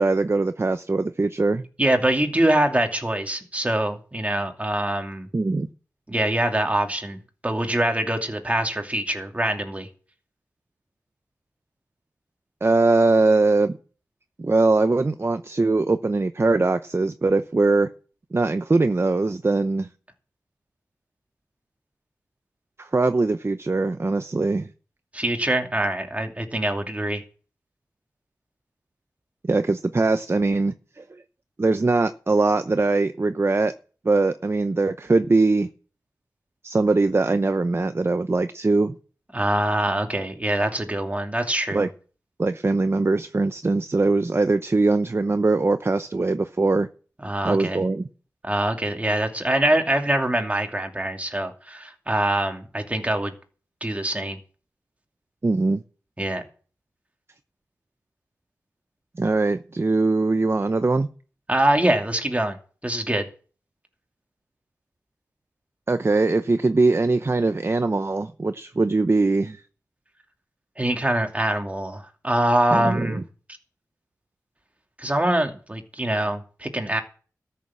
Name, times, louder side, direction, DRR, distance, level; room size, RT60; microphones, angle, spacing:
voice 1, 0.0-1.6 5.3-5.7 12.6-13.7 14.4-17.9 18.3-19.9 22.8-24.7 29.4-31.0 31.6-33.7 34.0-35.7 36.6-39.0 41.7-41.9 42.4-46.9 47.4-48.1 55.4-55.8 59.2-61.1 65.9-69.6 72.7-73.2, right 3 dB, 40° right, 0.8 m, -21 dB
voice 2, 1.8-5.3 6.1-9.9 25.1-27.2 39.3-41.9 47.2-47.8 48.4-53.3 53.8-54.4 56.2-56.4 61.5-62.6 62.8-63.2 70.8-73.2 75.0-77.0, right 1 dB, 20° right, 2.7 m, -24 dB
13.5 x 6.9 x 7.5 m
cardioid pair, 45°, 6 cm